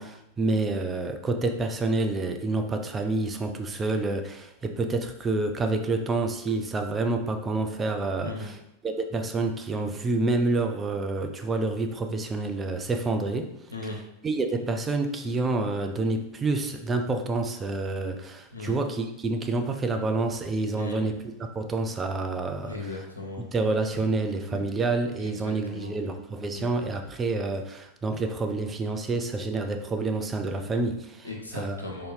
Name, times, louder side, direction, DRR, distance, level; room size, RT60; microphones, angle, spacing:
voice 1, 0.0-8.6 8.8-13.5 14.2-21.2 21.5-22.8 23.5-31.3 31.5-31.8, right 3 dB, 20° right, 6 dB, 0.4 m, -28 dB
voice 2, 22.6-23.5 23.9-24.0 24.5-24.6 25.2-25.9 26.5-26.7 31.2-32.1, left 3 dB, 80° left, -1 dB, 0.9 m, -37 dB
3.8 x 2.7 x 4.0 m, 0.84 s
figure-of-eight pair, 90°, 0 cm